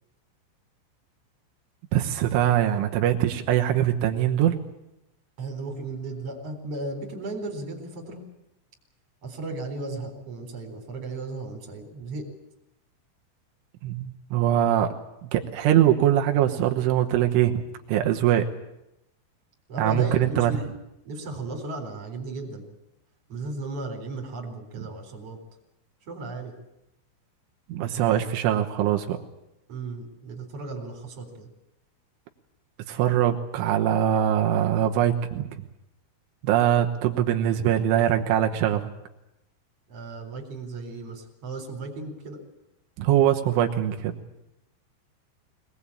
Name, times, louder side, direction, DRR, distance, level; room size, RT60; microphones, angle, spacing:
voice 1, 1.9-4.6 13.8-15.0 15.3-17.6 17.9-18.5 19.8-20.5 27.7-29.2 32.9-35.5 36.4-38.9 43.0-44.2, right 11 dB, 85° right, 4 dB, 3.6 m, -22 dB
voice 2, 5.4-8.2 9.2-12.3 19.7-20.7 21.0-22.7 23.3-25.4 26.0-26.5 29.7-31.5 39.9-42.4, right 2 dB, 35° right, 3 dB, 4.4 m, -35 dB
23.0 x 19.5 x 8.6 m, 0.87 s
omnidirectional pair, 5.5 m